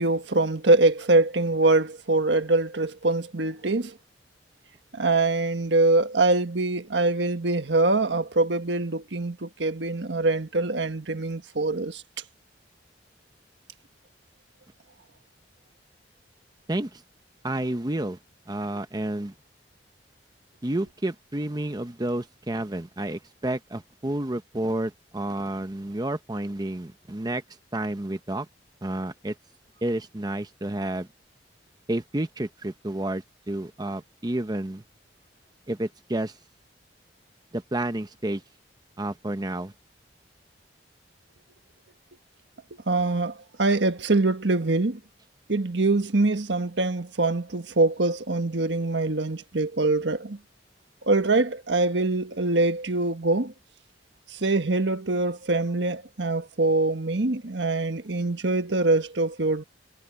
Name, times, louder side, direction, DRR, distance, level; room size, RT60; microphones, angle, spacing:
voice 1, 0.0-4.0 4.9-12.0 42.9-45.0 45.5-50.4 51.0-53.5 54.3-59.6, right 2 dB, 75° right, 1.4 m, -24 dB
voice 2, 16.7-17.0 17.4-18.2 18.5-19.3 20.6-27.4 27.7-28.5 28.8-29.4 29.8-31.1 31.9-34.8 35.7-36.4 37.5-38.4 39.0-39.7, right 1 dB, 20° right, 0.8 m, -30 dB
head